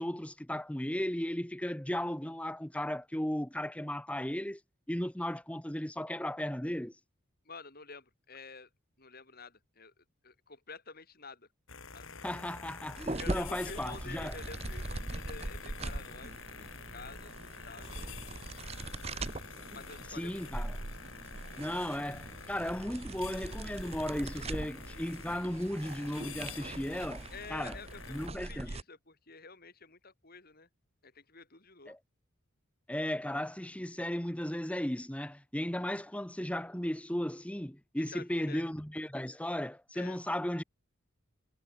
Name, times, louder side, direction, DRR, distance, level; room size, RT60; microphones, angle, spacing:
voice 1, 0.0-4.6 4.9-6.9 12.2-14.4 20.2-20.8 21.6-27.8 28.1-28.7 31.9-32.0 32.9-40.6, left 1 dB, 5° left, 1.1 m, -35 dB
voice 2, 7.4-8.7 9.0-11.5 11.9-12.1 13.2-16.3 16.7-18.2 19.7-20.6 27.3-30.7 31.0-31.9 38.0-38.6 39.9-40.2, left 4 dB, 45° left, 5.8 m, -49 dB
sound 1, 11.7-28.3, left 5 dB, 65° left, 3.4 m, -48 dB
sound 2, 13.0-28.8, right 2 dB, 30° right, 1.0 m, -42 dB
head